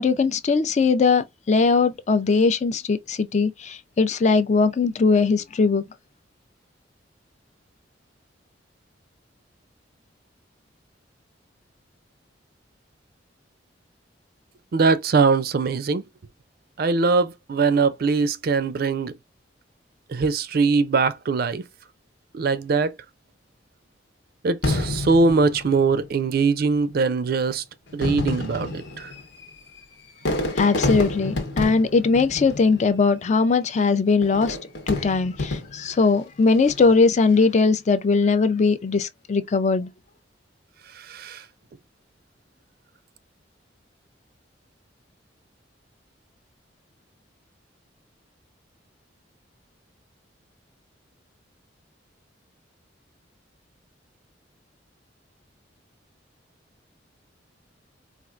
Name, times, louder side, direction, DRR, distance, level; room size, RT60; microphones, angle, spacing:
voice 1, 0.0-5.8 30.6-34.6 34.9-39.9, left 4 dB, 40° left, 0.4 m, -20 dB
voice 2, 14.7-16.0 16.8-19.1 20.1-21.6 22.3-22.9 24.4-27.6 27.9-29.1 41.0-41.4, right 4 dB, 50° right, 0.4 m, -22 dB
Fireworks, 24.6-26.3 27.1-27.2 27.9-33.2 34.2-36.0 36.6-37.0, left 2 dB, 65° left, 1.0 m, -29 dB
4.3 x 2.4 x 2.4 m
head